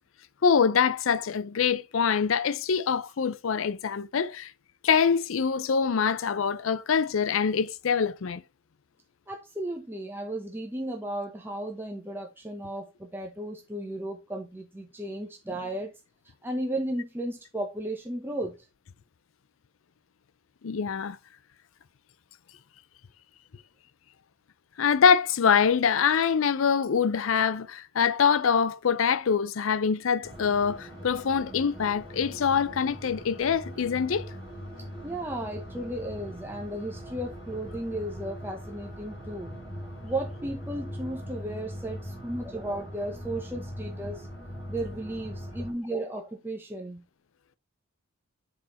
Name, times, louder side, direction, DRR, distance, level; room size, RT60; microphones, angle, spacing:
voice 1, 0.4-4.5 4.8-8.4 20.6-21.2 24.8-34.3, left 6 dB, 65° left, 0.5 m, -24 dB
voice 2, 9.3-15.9 16.4-18.5 35.0-39.5 40.0-44.3 44.7-47.0, right 1 dB, 10° right, 0.8 m, -34 dB
sound 1, 30.2-45.7, equal, 50° left, 4.1 m, -41 dB
7.7 x 4.2 x 4.3 m
head